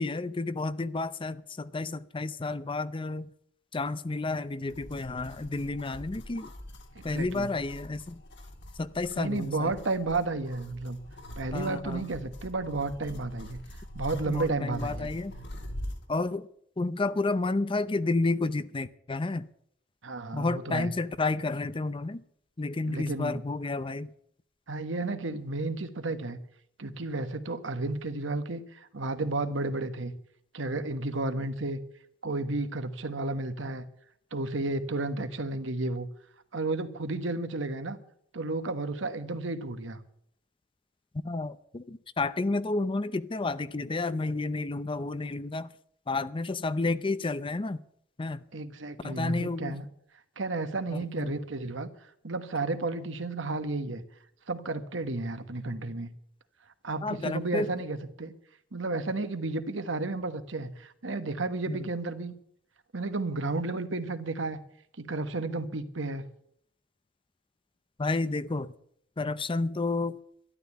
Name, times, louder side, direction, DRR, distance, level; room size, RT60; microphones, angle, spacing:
voice 1, 0.0-3.3 3.7-6.5 7.0-8.2 8.8-9.8 11.5-12.1 14.3-15.3 16.1-16.5 16.8-19.5 20.3-22.2 22.6-24.1 41.2-45.7 46.1-47.8 48.2-48.4 49.0-49.8 50.9-51.3 57.0-57.7 61.7-61.9 68.0-68.7 69.2-70.2, left 3 dB, 25° left, 0.6 m, -31 dB
sound 1, 4.7-16.1, equal, 65° left, 2.2 m, -44 dB
voice 2, 6.9-7.5 9.2-11.0 11.4-13.6 13.9-15.1 20.0-20.9 22.9-23.4 24.7-26.4 26.8-30.1 30.5-31.8 32.2-33.8 34.3-36.1 36.5-38.0 38.3-40.0 48.5-49.8 50.4-51.9 52.2-54.0 54.5-56.1 56.8-58.3 58.7-62.3 62.9-64.6 65.0-66.3, right 2 dB, 70° right, 1.3 m, -32 dB
12.5 x 12.0 x 8.3 m
head